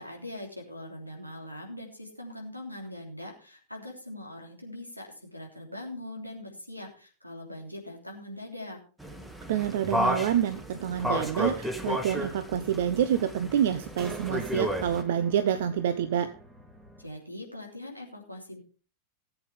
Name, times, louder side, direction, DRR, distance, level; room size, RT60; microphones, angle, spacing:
voice 1, 0.0-8.8 17.0-18.6, left 1 dB, 90° right, 2 dB, 3.3 m, -42 dB
sound 1, 9.0-15.0, equal, 5° right, 1.6 m, -32 dB
voice 2, 9.5-16.3, right 9 dB, 55° right, 12 dB, 0.7 m, -27 dB
sound 2, 10.8-17.1, right 2 dB, 25° right, 3.1 m, -48 dB
18.5 x 8.1 x 3.5 m, 0.37 s
figure-of-eight pair, 90°, 0 cm